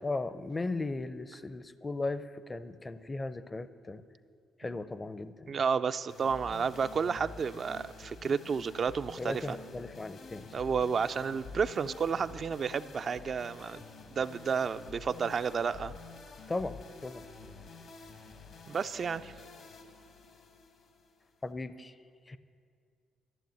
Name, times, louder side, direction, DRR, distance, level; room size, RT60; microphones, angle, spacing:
voice 1, 0.0-4.0 4.6-5.5 9.2-10.5 16.5-16.7 17.0-17.2 21.4-21.9 22.3-22.4, left 2 dB, 25° left, 14 dB, 0.5 m, -36 dB
voice 2, 5.5-9.6 10.5-13.8 14.2-15.9 18.7-19.3, right 6 dB, 50° right, 11 dB, 0.3 m, -31 dB
sound 1, 6.1-21.5, left 4 dB, 65° left, 1.2 m, -49 dB
12.5 x 6.9 x 9.3 m, 2.2 s
cardioid pair, 90°, 0 cm